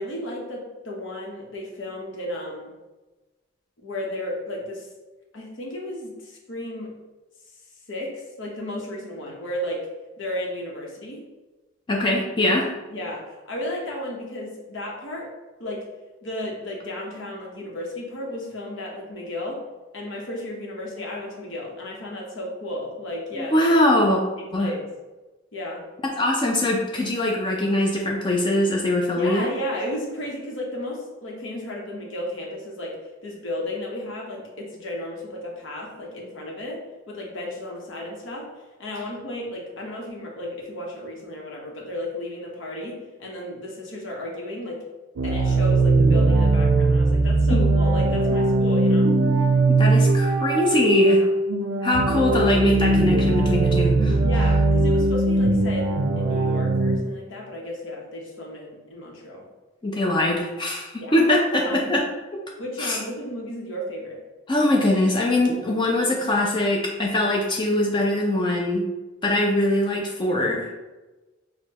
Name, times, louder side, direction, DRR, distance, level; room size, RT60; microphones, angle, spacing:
voice 1, 0.0-2.7 3.8-4.9 5.3-6.9 7.9-8.1 8.4-9.8 10.2-11.2 12.4-12.6 12.9-15.3 15.6-15.8 16.2-19.6 19.9-23.5 24.4-24.8 25.5-25.8 29.1-33.0 33.2-36.8 37.1-38.5 38.8-44.8 45.2-49.1 51.2-51.3 54.2-59.4 61.0-61.1 61.6-61.9 62.6-64.2, left 1 dB, 75° left, -2 dB, 0.9 m, -33 dB
voice 2, 11.9-12.7 23.4-24.2 24.5-24.7 26.2-29.5 47.5-47.7 49.7-51.2 51.8-54.2 59.8-62.0 62.3-62.4 62.8-63.0 64.5-68.9 69.2-70.7, left 1 dB, 25° left, -2 dB, 0.4 m, -22 dB
sound 1, 45.2-57.0, right 2 dB, 80° right, 0.4 m, -20 dB
6.4 x 2.2 x 2.8 m, 1.2 s
head